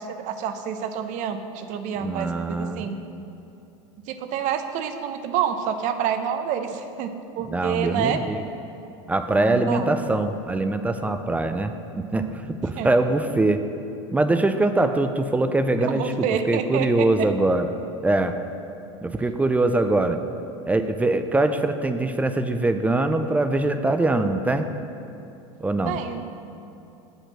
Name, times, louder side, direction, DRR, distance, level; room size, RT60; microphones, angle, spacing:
voice 1, 0.0-3.0 4.1-8.2 9.3-9.9 12.8-12.9 15.9-17.1 25.9-26.2, right 8 dB, 50° right, 8 dB, 0.6 m, -28 dB
voice 2, 2.0-2.8 7.5-8.4 9.1-13.6 14.1-17.7 18.0-18.4 19.0-20.2 20.7-24.7 25.6-26.0, right 2 dB, 10° right, 9 dB, 0.4 m, -23 dB
7.9 x 4.4 x 6.2 m, 2.9 s
supercardioid pair, 105°, 16 cm